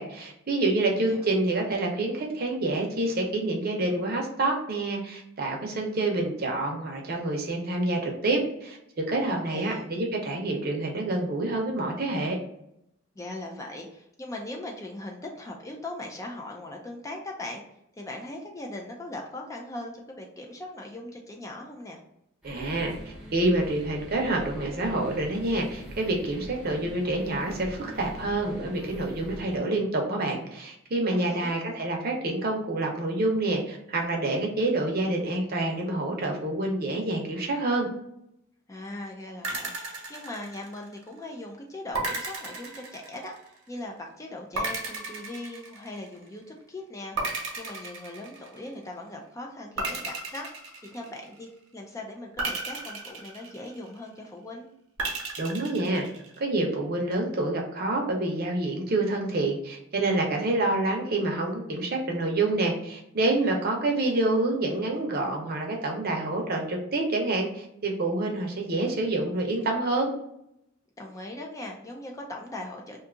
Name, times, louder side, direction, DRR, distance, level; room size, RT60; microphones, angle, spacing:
voice 1, 0.0-12.4 22.4-37.9 55.4-56.0 56.4-70.1, right 2 dB, 50° right, 1 dB, 0.7 m, -27 dB
voice 2, 0.8-1.3 9.3-9.9 13.2-17.6 18.0-22.0 31.1-31.6 38.7-43.3 43.7-50.5 50.8-54.7 71.0-73.0, left 1 dB, 15° left, 0 dB, 0.3 m, -40 dB
sound 1, 22.4-29.6, equal, ahead, 0.7 m, -43 dB
sound 2, 39.4-41.0 41.9-43.6 44.6-46.3 47.2-48.8 49.8-51.5 52.4-54.1 55.0-56.4, right 3 dB, 85° right, 0.9 m, -34 dB
2.7 x 2.3 x 3.7 m, 0.78 s
head